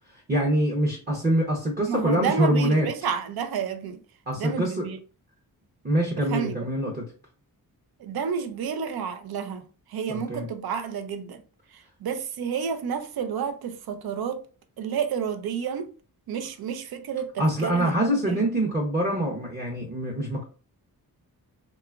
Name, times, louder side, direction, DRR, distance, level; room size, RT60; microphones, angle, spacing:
voice 1, 0.3-2.9 4.3-4.9 5.8-7.0 10.1-10.5 17.4-20.4, right 1 dB, 25° right, 0.7 m, -24 dB
voice 2, 1.9-4.0 4.4-5.0 6.2-6.6 8.0-11.4 11.7-14.4 14.8-15.9 16.3-18.4, right 7 dB, 80° right, 0.5 m, -30 dB
2.9 x 2.3 x 2.3 m
cardioid pair, 75°, 37 cm